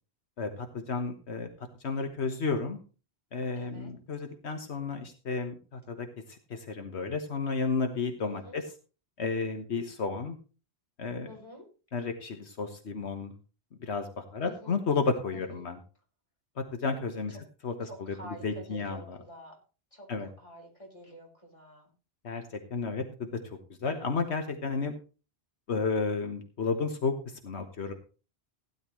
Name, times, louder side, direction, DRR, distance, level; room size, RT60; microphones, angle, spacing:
voice 1, 0.4-1.5 1.8-2.8 3.3-8.6 9.2-10.4 11.0-11.3 11.9-13.3 13.8-15.8 16.6-17.4 17.6-17.9 18.4-19.2 20.1-20.3 22.2-23.3 23.8-24.9 25.7-27.9, left 4 dB, 80° left, 6 dB, 1.5 m, -32 dB
voice 2, 3.6-4.0 8.2-8.6 11.2-11.7 14.4-14.8 15.3-15.7 17.3-17.4 17.8-19.6 19.9-21.9, equal, 30° left, 0 dB, 3.9 m, -49 dB
16.0 x 11.0 x 3.1 m, 0.35 s
omnidirectional pair, 1.1 m